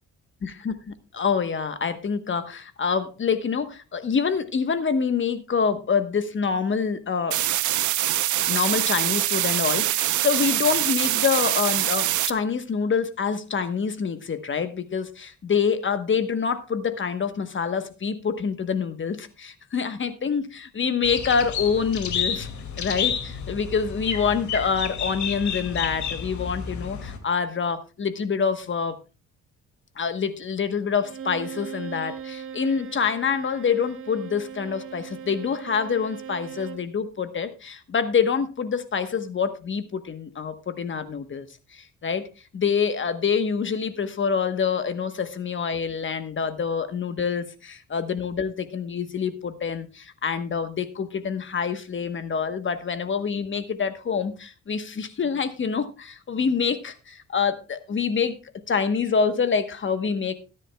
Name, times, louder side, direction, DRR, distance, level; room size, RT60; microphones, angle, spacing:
voice 1, 0.4-7.4 8.5-22.5 22.8-29.0 30.0-41.5 41.7-42.3 42.5-58.4 58.7-60.3, left 6 dB, 40° left, 10 dB, 1.2 m, -26 dB
sound 1, 7.3-12.3, right 14 dB, 75° right, 0.8 m, -24 dB
sound 2, 21.0-27.2, left 7 dB, 70° left, 2.3 m, -30 dB
Bowed string instrument, 31.0-36.9, right 8 dB, 45° right, 1.3 m, -39 dB
17.5 x 9.9 x 2.3 m, 0.31 s
cardioid pair, 90°, 30 cm